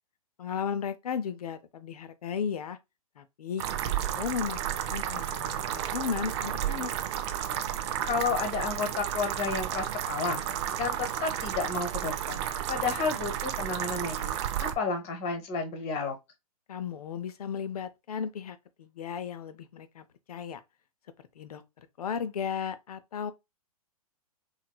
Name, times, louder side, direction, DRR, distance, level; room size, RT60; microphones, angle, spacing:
voice 1, 0.4-2.8 3.2-4.6 4.9-6.9 16.7-20.6 21.4-21.6 22.0-23.3, left 7 dB, 75° left, 0.6 m, -35 dB
sound 1, 3.6-14.7, right 10 dB, 45° right, 0.4 m, -32 dB
voice 2, 8.1-10.4 10.7-12.4 12.7-16.1, left 4 dB, 35° left, 0.9 m, -31 dB
3.0 x 2.8 x 2.2 m
hypercardioid pair, 120°, 19 cm